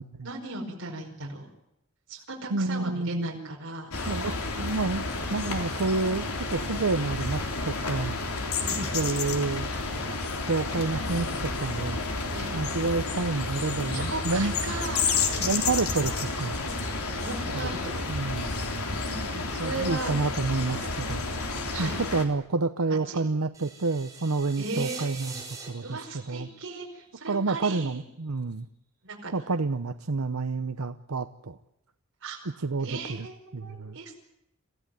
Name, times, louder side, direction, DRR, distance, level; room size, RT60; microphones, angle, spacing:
voice 1, 0.2-1.5 2.1-3.9 8.6-8.8 12.3-12.5 13.9-15.0 15.3-15.5 17.1-18.1 19.0-20.1 21.7-21.9 22.9-23.2 24.6-25.3 25.8-28.0 29.0-29.3 32.2-34.1, right 3 dB, 60° right, -2 dB, 5.1 m, -37 dB
voice 2, 2.5-3.5 4.1-8.2 8.8-9.7 10.5-12.0 12.5-14.5 15.4-16.6 17.5-17.7 18.1-18.7 19.6-21.4 21.8-26.5 27.3-28.7 29.3-31.6 32.6-33.3 33.5-34.0, right 3 dB, 85° right, 10 dB, 0.8 m, -29 dB
sound 1, 3.9-22.2, left 3 dB, 85° left, 3.7 m, -31 dB
sound 2, 23.5-27.6, right 5 dB, 15° right, 5.4 m, -44 dB
27.0 x 16.0 x 9.2 m, 0.85 s
head